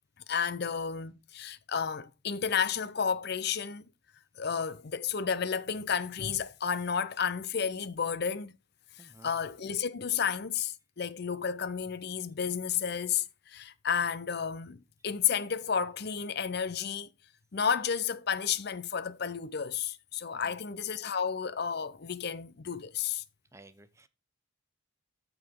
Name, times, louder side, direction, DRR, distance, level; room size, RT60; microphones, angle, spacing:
voice 1, 0.3-3.8 4.4-8.5 9.0-17.1 17.5-23.2, left 7 dB, 50° left, 0.6 m, -32 dB
voice 2, 9.0-9.3 20.3-20.6 23.5-24.1, right 2 dB, 15° right, 0.5 m, -55 dB
13.5 x 4.8 x 3.7 m
head